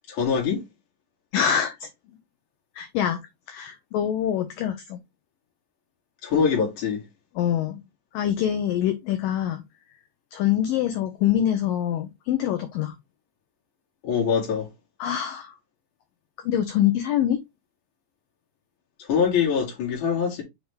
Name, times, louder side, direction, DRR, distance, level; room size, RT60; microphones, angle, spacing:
voice 1, 0.1-0.6 6.2-7.0 14.0-14.7 19.0-20.4, left 6 dB, 50° left, 3.3 m, -23 dB
voice 2, 1.3-1.9 2.8-3.2 3.5-5.0 7.4-7.8 8.1-9.6 10.3-13.0 15.0-15.5 16.4-17.4, left 10 dB, 85° left, 2.0 m, -25 dB
6.7 x 4.8 x 3.3 m
omnidirectional pair, 4.9 m